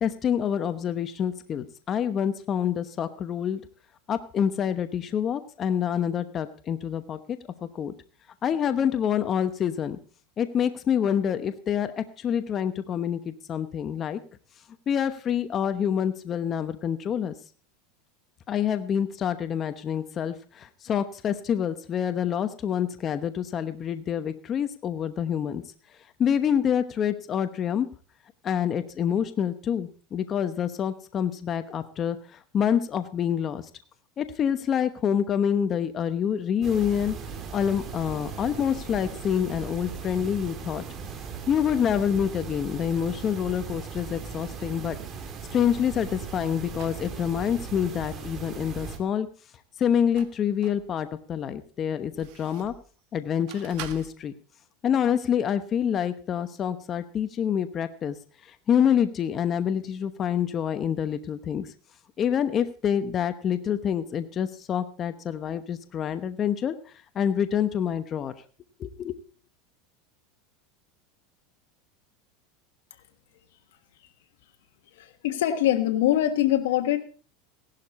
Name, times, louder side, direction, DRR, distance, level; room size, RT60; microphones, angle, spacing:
voice 1, 0.0-3.6 4.1-7.9 8.4-10.0 10.4-14.2 14.9-17.3 18.5-25.6 26.2-27.9 28.4-33.7 34.2-37.2 37.5-40.8 41.5-45.0 45.5-49.3 49.8-52.7 53.1-54.3 54.8-58.2 58.4-61.7 62.2-68.3 68.8-69.2, left 8 dB, 30° left, 10 dB, 0.9 m, -27 dB
sound 1, 36.6-49.0, right 6 dB, 30° right, 2.5 m, -38 dB
sound 2, 46.7-47.1 49.8-50.9 51.4-52.9 53.5-54.1, right 12 dB, 60° right, 1.5 m, -45 dB
voice 2, 74.9-77.0, left 12 dB, 85° left, 5 dB, 1.4 m, -23 dB
16.0 x 11.5 x 4.2 m, 0.39 s
supercardioid pair, 135°, 0 cm